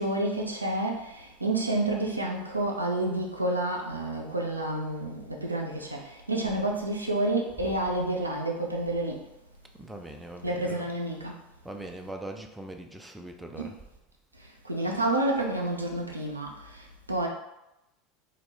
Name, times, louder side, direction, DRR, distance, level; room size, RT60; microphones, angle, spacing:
voice 1, 0.0-9.2 10.4-11.4 13.6-13.7 14.6-17.3, right 1 dB, 90° right, 0 dB, 0.3 m, -29 dB
voice 2, 9.8-10.9 11.6-13.8, right 1 dB, 5° right, 3 dB, 0.3 m, -41 dB
2.3 x 2.0 x 3.1 m, 0.90 s
figure-of-eight pair, 80°, 0 cm